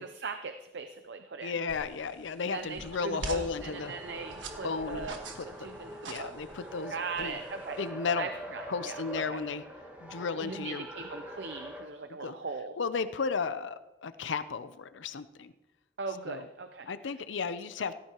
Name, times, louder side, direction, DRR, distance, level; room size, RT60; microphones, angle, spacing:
voice 1, 0.0-1.5 2.4-6.4 6.9-7.8 8.2-9.0 9.3-9.4 10.4-12.7 16.0-16.9 17.8-17.9, right 4 dB, 70° right, 8 dB, 0.6 m, -40 dB
voice 2, 1.4-3.9 4.6-5.1 5.4-5.5 6.1-7.3 7.8-8.3 8.7-9.6 10.0-10.9 12.2-12.3 12.8-15.5 16.3-16.4 16.9-17.9, left 5 dB, 90° left, 12 dB, 0.6 m, -34 dB
sound 1, 1.7-7.9, right 3 dB, 90° right, 1.6 m, -45 dB
Race car auto racing, 2.7-11.9, equal, 10° right, 1.6 m, -44 dB
16.5 x 13.5 x 3.0 m, 1.0 s
head